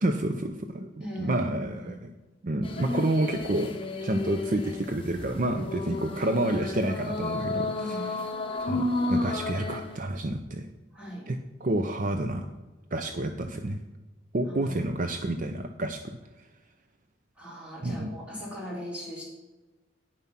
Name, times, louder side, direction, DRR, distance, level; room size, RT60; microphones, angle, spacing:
voice 1, 0.0-2.1 2.4-3.7 4.0-8.0 8.6-10.7 11.3-12.5 12.9-13.8 14.3-16.5 17.8-18.1, right 1 dB, 45° right, 6 dB, 0.6 m, -29 dB
voice 2, 1.0-1.4 1.8-1.9 7.8-8.1 10.9-11.3 14.4-14.8 17.4-19.3, equal, 5° right, -5 dB, 3.6 m, -39 dB
sound 1, 2.6-10.0, left 2 dB, 30° left, 1.1 m, -32 dB
9.6 x 7.2 x 5.8 m, 1.2 s
head